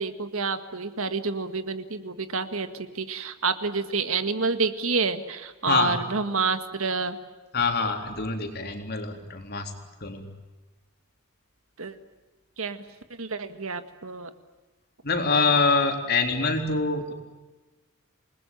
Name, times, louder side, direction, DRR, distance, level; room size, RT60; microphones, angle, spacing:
voice 1, 0.0-7.2 11.8-12.0 12.6-12.8 13.2-14.3, right 4 dB, 70° right, 9 dB, 1.9 m, -28 dB
voice 2, 5.7-6.0 7.5-9.7 10.0-10.2 15.0-17.1, left 4 dB, 45° left, 4 dB, 3.7 m, -25 dB
28.5 x 20.5 x 9.1 m, 1.2 s
head